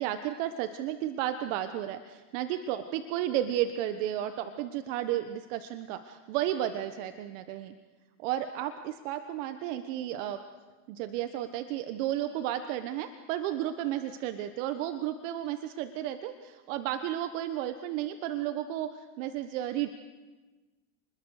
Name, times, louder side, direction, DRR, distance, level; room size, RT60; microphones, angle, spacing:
voice 1, 0.0-7.7 8.2-10.4 10.9-19.9, right 12 dB, 70° right, 9 dB, 1.4 m, -33 dB
30.0 x 21.5 x 6.6 m, 1.3 s
supercardioid pair, 110°, 39 cm